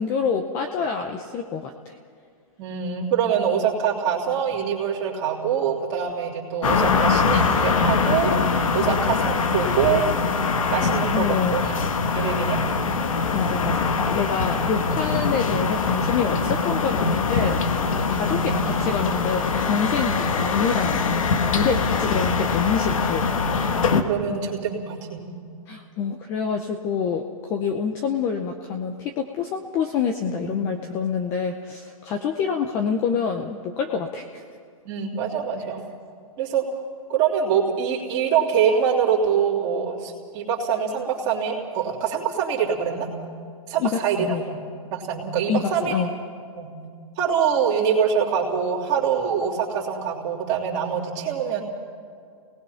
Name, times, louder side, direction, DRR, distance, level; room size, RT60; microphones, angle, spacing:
voice 1, 0.0-1.9 11.1-11.6 13.3-21.0 21.4-23.3 25.7-34.4 43.8-44.4 45.5-46.1, left 6 dB, 15° left, 5 dB, 0.6 m, -27 dB
voice 2, 2.6-10.0 10.7-11.7 12.1-12.6 18.0-18.4 24.1-25.4 30.3-30.6 34.8-35.8 36.4-36.6 37.1-43.1 43.7-44.6 44.8-45.9 46.6-46.7 47.2-51.6, right 7 dB, 25° right, -4 dB, 3.2 m, -24 dB
sound 1, 6.6-24.0, left 4 dB, 70° left, 1.6 m, -23 dB
28.5 x 19.5 x 5.7 m, 2.3 s
hypercardioid pair, 175°, 18 cm